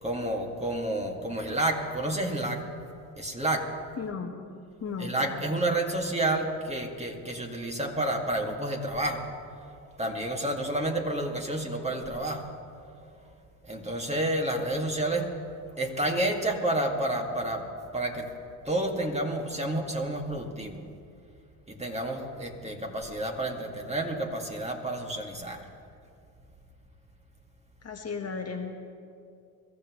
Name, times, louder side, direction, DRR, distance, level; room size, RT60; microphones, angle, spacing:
voice 1, 0.0-2.7 3.2-3.7 5.0-9.3 10.0-12.5 13.7-15.3 15.8-17.7 17.9-18.3 18.7-20.8 21.7-25.6, right 1 dB, 15° right, 1 dB, 2.1 m, -30 dB
voice 2, 4.0-4.3 4.8-5.1 27.8-28.8, left 5 dB, 40° left, 3 dB, 1.4 m, -34 dB
22.5 x 14.0 x 3.2 m, 2.4 s
supercardioid pair, 70°, 40 cm